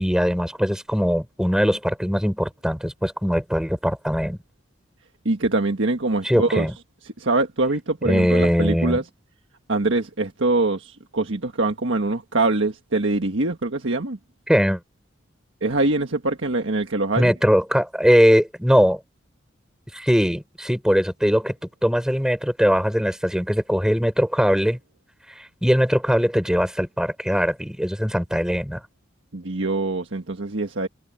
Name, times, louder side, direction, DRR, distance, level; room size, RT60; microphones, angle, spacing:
voice 1, 0.0-4.4 6.2-6.7 8.0-9.0 14.5-14.8 17.2-19.0 19.9-21.5 21.8-24.8 25.4-28.8, equal, 5° right, 4.2 m, -20 dB
voice 2, 5.2-6.7 7.0-9.0 9.7-14.2 15.6-17.3 29.3-30.9, right 2 dB, 70° right, 1.5 m, -23 dB
head